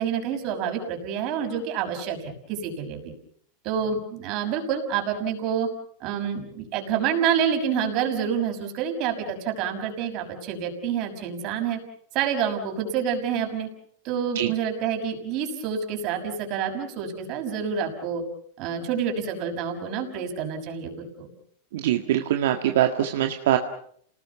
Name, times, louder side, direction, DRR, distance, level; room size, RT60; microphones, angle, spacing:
voice 1, 0.0-2.2 2.5-3.1 3.6-5.7 6.0-11.8 12.1-13.7 14.0-18.2 18.6-20.9 21.2-21.3, right 7 dB, 45° right, 4 dB, 6.2 m, -28 dB
voice 2, 21.7-23.6, right 12 dB, 75° right, 5 dB, 1.8 m, -23 dB
29.0 x 19.5 x 7.1 m, 0.65 s
supercardioid pair, 135°, 0 cm